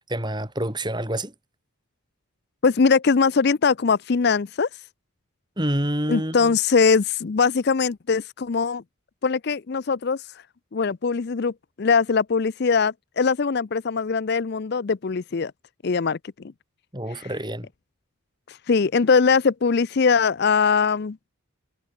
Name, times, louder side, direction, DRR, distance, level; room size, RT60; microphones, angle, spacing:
voice 1, 0.1-1.3 5.6-6.6 16.9-17.7, right 1 dB, 20° right, 7.5 m, -27 dB
voice 2, 2.6-4.7 6.1-8.8 9.2-10.2 10.7-11.5 11.8-15.5 15.8-16.2 18.5-21.2, left 5 dB, 50° left, 0.5 m, -21 dB
head